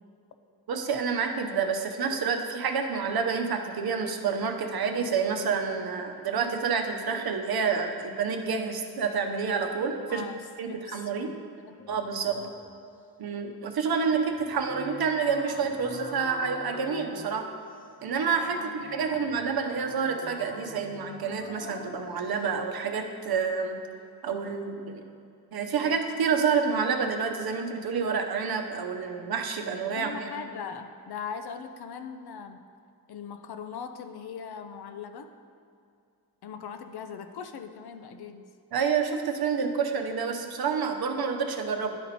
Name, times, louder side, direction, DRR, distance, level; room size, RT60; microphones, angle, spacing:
voice 1, 0.7-10.3 10.6-11.3 11.9-12.4 13.2-17.5 18.0-23.8 24.2-25.0 25.5-30.5 38.7-42.0, right 5 dB, 75° right, 5 dB, 0.8 m, -28 dB
voice 2, 10.7-11.4 11.7-11.8 18.6-19.2 29.9-32.7 33.1-35.3 36.4-38.5, left 6 dB, 80° left, 7 dB, 0.6 m, -40 dB
sound 1, 11.8-12.7 14.3-22.4, left 2 dB, 25° left, 0.6 m, -43 dB
11.0 x 4.2 x 4.1 m, 2.5 s
cardioid pair, 75°, 38 cm